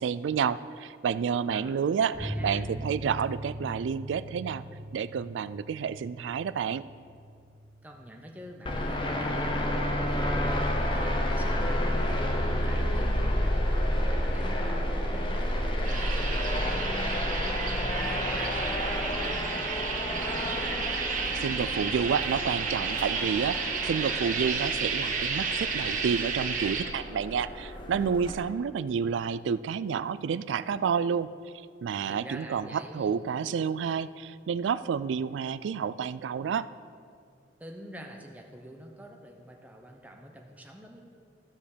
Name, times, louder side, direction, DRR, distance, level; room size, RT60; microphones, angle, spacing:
voice 1, 0.0-4.6 4.9-6.8 21.1-31.3 31.8-36.7, right 7 dB, 85° right, 16 dB, 0.3 m, -30 dB
sound 1, 2.1-9.3 9.5-9.6 9.9-10.0, right 1 dB, 65° right, 1.6 m, -41 dB
voice 2, 2.2-2.6 7.8-12.2 12.5-20.8 32.1-33.1 37.6-41.0, equal, 10° right, 1 dB, 0.8 m, -45 dB
sound 2, 8.7-28.3, left 1 dB, 25° left, 0.9 m, -30 dB
sound 3, 15.8-26.8, right 5 dB, 45° right, 1.0 m, -32 dB
13.0 x 5.1 x 6.7 m, 2.3 s
head